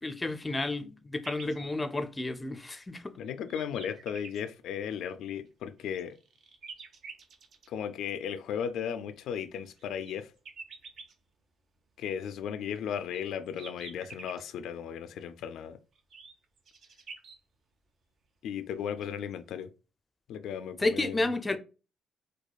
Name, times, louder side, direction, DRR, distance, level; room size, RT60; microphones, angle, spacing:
voice 1, 0.0-3.1 20.8-21.6, left 2 dB, 20° left, 0.5 m, -31 dB
sound 1, 1.2-1.6 2.3-2.4 3.0-4.4 5.5-7.7 9.3-11.1 12.6-14.4 15.9-17.4 18.6-18.7 19.0-19.3, right 4 dB, 60° right, 0.7 m, -48 dB
voice 2, 3.2-6.2 7.7-10.3 12.0-15.8 18.4-19.7 20.3-21.6, left 8 dB, 80° left, 0.3 m, -36 dB
4.6 x 2.3 x 2.3 m
cardioid pair, 90°, 0 cm